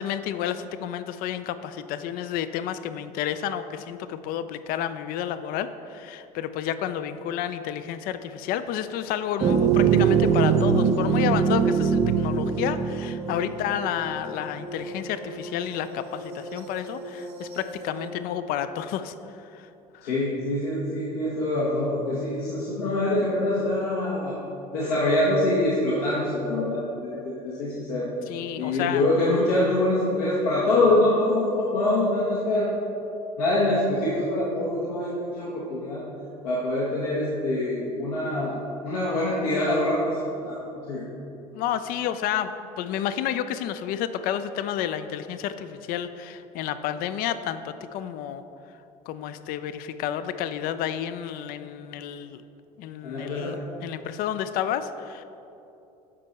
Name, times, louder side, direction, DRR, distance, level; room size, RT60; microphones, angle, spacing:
voice 1, 0.0-19.1 19.5-19.7 19.9-20.1 28.3-29.1 41.5-42.5 42.8-48.4 49.1-52.4 52.8-55.2, left 10 dB, 50° left, 12 dB, 0.4 m, -30 dB
sound 1, 9.4-14.0, right 7 dB, 35° right, 0.5 m, -22 dB
sound 2, 9.9-18.1, right 1 dB, 80° right, 0.8 m, -39 dB
voice 2, 20.0-24.4 24.7-28.1 28.6-32.7 33.4-36.0 36.4-41.0 53.0-53.6, left 1 dB, 75° left, -6 dB, 1.1 m, -25 dB
7.6 x 5.2 x 4.1 m, 2.9 s
hypercardioid pair, 70°, 20 cm